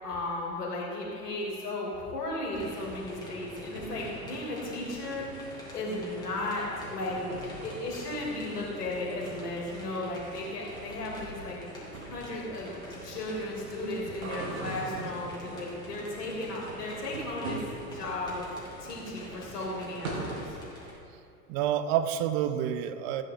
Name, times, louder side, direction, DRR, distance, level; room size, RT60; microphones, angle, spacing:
voice 1, 0.0-7.3 7.6-11.6 12.1-18.5 18.8-20.6, left 2 dB, 70° left, -3 dB, 3.2 m, -35 dB
sound 1, 2.5-20.9, left 1 dB, 10° left, 3.1 m, -47 dB
sound 2, 2.8-20.5, right 2 dB, 60° right, 2.2 m, -44 dB
voice 2, 21.5-23.2, right 10 dB, 40° right, 10 dB, 0.8 m, -28 dB
15.5 x 9.1 x 3.9 m, 2.6 s
figure-of-eight pair, 90°, 49 cm